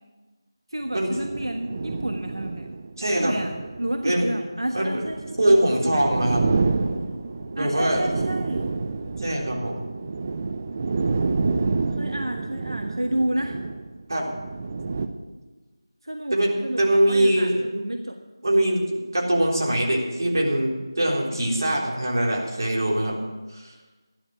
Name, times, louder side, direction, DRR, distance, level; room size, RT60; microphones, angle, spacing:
voice 1, 0.7-2.7 3.1-3.5 3.8-5.6 7.5-8.7 11.7-13.6 16.0-16.4 16.6-18.2, right 1 dB, 85° right, 4 dB, 1.3 m, -30 dB
sound 1, 0.8-15.1, right 4 dB, 25° right, 0.7 m, -29 dB
voice 2, 3.0-3.4 4.0-4.3 4.7-5.0 5.4-6.4 7.5-8.0 9.2-9.9 14.1-14.3 16.3-17.7 18.4-23.2 23.5-23.7, right 1 dB, 50° right, -2 dB, 3.6 m, -22 dB
13.0 x 11.5 x 6.1 m, 1.3 s
figure-of-eight pair, 170°, 2 cm